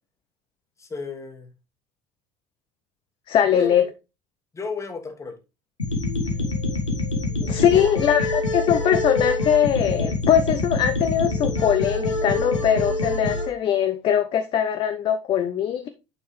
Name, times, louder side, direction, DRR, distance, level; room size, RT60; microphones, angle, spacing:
voice 1, 0.8-1.5 3.4-3.7 4.5-5.4 7.7-8.0, left 4 dB, 20° left, 1.5 m, -33 dB
voice 2, 3.3-3.8 7.4-15.9, left 9 dB, 35° left, 0.5 m, -21 dB
sound 1, 5.8-13.5, left 2 dB, 80° left, 1.3 m, -26 dB
8.7 x 4.6 x 3.2 m
figure-of-eight pair, 65°, 15 cm